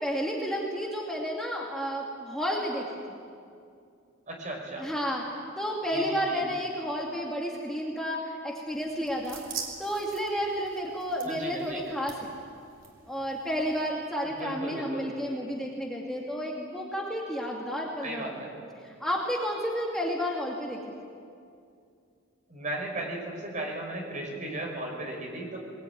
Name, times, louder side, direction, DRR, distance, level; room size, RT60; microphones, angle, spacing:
voice 1, 0.0-3.2 4.8-5.2 5.6-9.4 9.8-12.3 13.1-18.3 18.8-20.8, equal, ahead, -2 dB, 2.3 m, -31 dB
voice 2, 4.3-4.9 5.9-6.4 11.3-11.8 14.2-15.1 18.0-18.5 22.5-25.6, right 1 dB, 40° right, 1 dB, 5.3 m, -36 dB
sound 1, 8.7-13.9, right 6 dB, 70° right, 3.8 m, -44 dB
21.5 x 21.5 x 9.4 m, 2.4 s
head